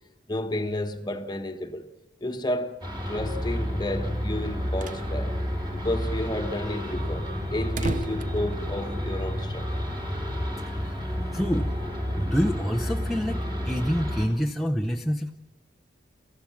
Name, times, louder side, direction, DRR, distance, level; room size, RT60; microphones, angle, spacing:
voice 1, 0.3-1.9 2.2-5.3 5.7-9.7, left 1 dB, 20° left, 1.3 m, -31 dB
sound 1, 2.8-14.3, equal, 25° right, 3.8 m, -30 dB
sound 2, 4.8-5.1 5.4-5.5 5.7-5.8 6.3-9.3, right 3 dB, 40° right, 0.6 m, -37 dB
voice 2, 10.7-11.7 12.2-15.3, equal, ahead, 0.7 m, -27 dB
29.0 x 15.0 x 7.3 m
head